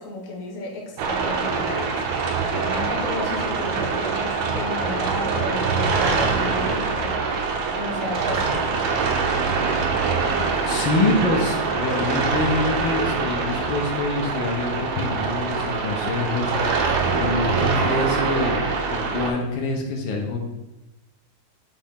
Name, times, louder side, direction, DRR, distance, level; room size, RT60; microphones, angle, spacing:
voice 1, 0.0-7.2 7.8-8.7, left 2 dB, 50° left, -1 dB, 1.0 m, -33 dB
sound 1, 1.0-19.3, right 4 dB, 80° right, 1.4 m, -24 dB
voice 2, 10.4-16.9 17.2-18.6 18.9-20.4, left 3 dB, 75° left, 1 dB, 1.4 m, -26 dB
5.2 x 2.7 x 3.5 m, 0.97 s
omnidirectional pair, 2.2 m